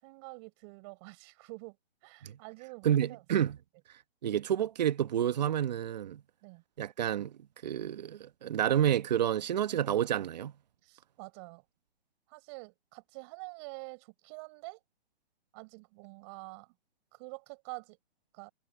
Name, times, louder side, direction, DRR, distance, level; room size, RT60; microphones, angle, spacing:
voice 1, 0.0-1.8 2.0-3.2 6.4-6.6 10.8-11.6 12.3-14.8 15.5-16.7 17.1-18.0 18.3-18.5, right 31 dB, 25° right, 5.7 m, -47 dB
voice 2, 2.8-3.6 4.2-6.2 6.8-7.4 7.6-10.5, right 10 dB, 40° right, 1.2 m, -29 dB
hypercardioid pair, 160°, 32 cm